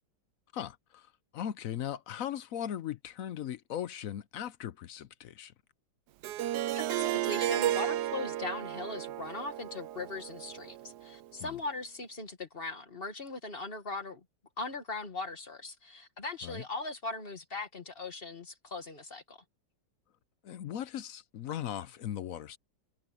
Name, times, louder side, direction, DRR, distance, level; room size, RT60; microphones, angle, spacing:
voice 1, 0.5-1.1 1.3-5.5 11.4-11.6 16.4-16.6 20.4-22.6, left 10 dB, 60° left, 0.9 m, -38 dB
Harp, 6.2-11.2, right 13 dB, 75° right, 1.2 m, -33 dB
voice 2, 6.8-14.2 14.6-19.4, left 3 dB, 35° left, 1.7 m, -39 dB
omnidirectional pair, 1.9 m